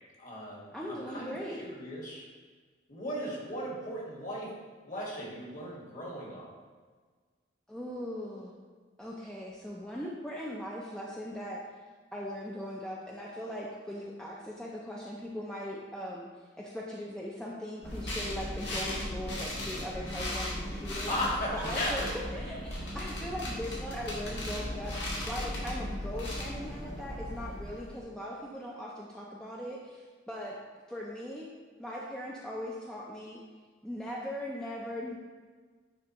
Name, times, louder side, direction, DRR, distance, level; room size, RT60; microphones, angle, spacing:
voice 1, 0.2-2.2 2.9-4.5 4.8-6.5 21.1-22.1, equal, 40° left, -4 dB, 1.5 m, -36 dB
voice 2, 0.7-1.7 7.7-8.5 9.0-11.6 12.1-16.3 16.6-21.2 21.5-30.6 30.9-31.5 31.8-33.4 33.8-35.2, equal, 5° left, -4 dB, 0.4 m, -39 dB
sound 1, 17.8-28.0, left 1 dB, 60° left, 1.5 m, -37 dB
9.5 x 3.4 x 2.9 m, 1.5 s
head